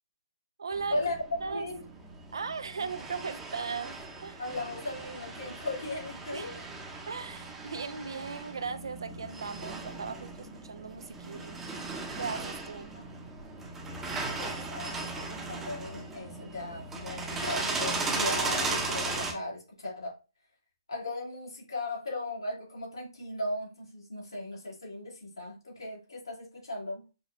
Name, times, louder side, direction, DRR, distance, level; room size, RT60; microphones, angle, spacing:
voice 1, 0.6-1.0 1.4-1.7 2.3-4.4 6.3-6.7 7.1-11.6 12.2-12.9, right 5 dB, 80° right, 0.4 m, -38 dB
sound 1, 0.7-19.3, right 3 dB, 10° right, 0.7 m, -37 dB
voice 2, 1.5-1.8 4.4-6.6 12.9-13.0 14.4-20.1 20.9-27.0, left 2 dB, 90° left, 2.1 m, -37 dB
5.0 x 2.2 x 2.6 m
hypercardioid pair, 140°, 2 cm